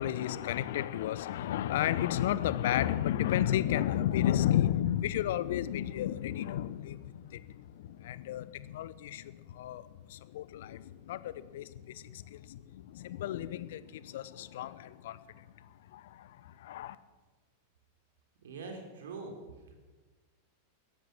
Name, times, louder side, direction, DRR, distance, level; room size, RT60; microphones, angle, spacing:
voice 1, 0.0-17.0, left 12 dB, 55° left, 16 dB, 0.8 m, -33 dB
voice 2, 18.4-19.8, right 3 dB, 60° right, 3 dB, 3.5 m, -44 dB
17.0 x 13.5 x 6.2 m, 1.3 s
figure-of-eight pair, 90°, 0 cm